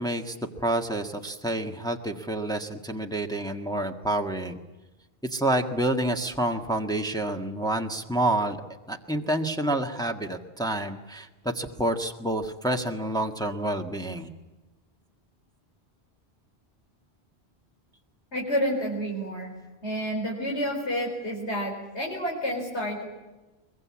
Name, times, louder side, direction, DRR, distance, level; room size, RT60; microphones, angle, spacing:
voice 1, 0.0-4.6 5.2-8.6 8.9-14.3, right 1 dB, 5° left, 3 dB, 1.6 m, -28 dB
voice 2, 18.3-19.5 19.8-23.1, equal, 90° left, -2 dB, 4.9 m, -29 dB
23.0 x 22.5 x 8.6 m, 1.1 s
omnidirectional pair, 1.1 m